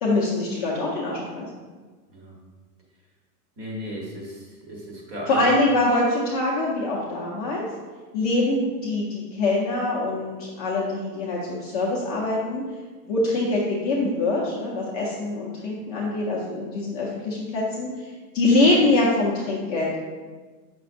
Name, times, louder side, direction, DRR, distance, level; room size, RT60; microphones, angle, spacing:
voice 1, 0.0-1.5 5.3-7.6 8.1-12.6 13.1-17.9 18.3-19.9, left 2 dB, 25° left, -5 dB, 0.6 m, -24 dB
voice 2, 3.6-5.5 18.4-18.7, equal, 20° right, -2 dB, 1.0 m, -35 dB
7.5 x 6.0 x 2.5 m, 1.4 s
supercardioid pair, 170°, 48 cm